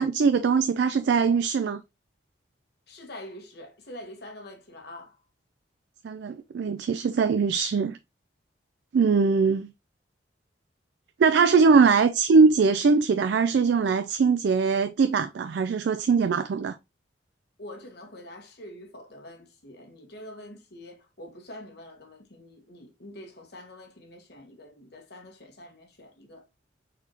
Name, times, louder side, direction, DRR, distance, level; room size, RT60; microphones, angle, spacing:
voice 1, 0.0-1.8 6.0-8.0 8.9-9.7 11.2-16.8, right 5 dB, 60° right, 0.3 m, -21 dB
voice 2, 2.9-5.2 17.6-26.4, left 1 dB, 55° left, 1.2 m, -45 dB
4.5 x 4.0 x 2.7 m
head